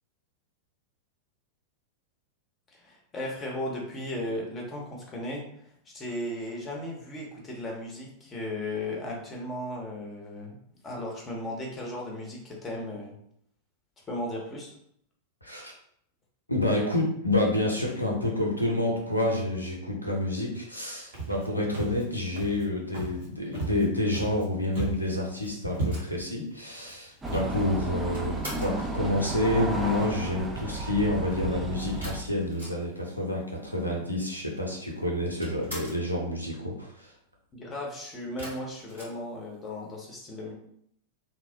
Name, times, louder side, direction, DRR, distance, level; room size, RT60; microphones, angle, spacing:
voice 1, 2.7-5.4 5.9-10.6 10.8-13.2 14.1-14.8 37.5-40.5, left 1 dB, 20° left, -1 dB, 0.8 m, -36 dB
voice 2, 15.4-15.7 16.5-37.1, left 1 dB, 85° left, -1 dB, 0.6 m, -28 dB
Walk footsteps, 21.1-21.5 21.7-22.0 22.3-22.6 22.9-23.3 23.5-24.4 24.7-25.1 25.4-25.5 25.7-26.3 26.8-26.9 27.3-27.5, right 2 dB, 60° right, 0.8 m, -34 dB
sound 1, 25.8-28.9 32.0-33.2 33.4-33.5 33.7-34.5 34.8-36.1 38.4-39.9, equal, 85° right, 1.4 m, -44 dB
sound 2, 27.2-32.2, right 2 dB, 15° right, 0.4 m, -33 dB
2.9 x 2.0 x 2.6 m, 0.70 s
figure-of-eight pair, 90°, 0 cm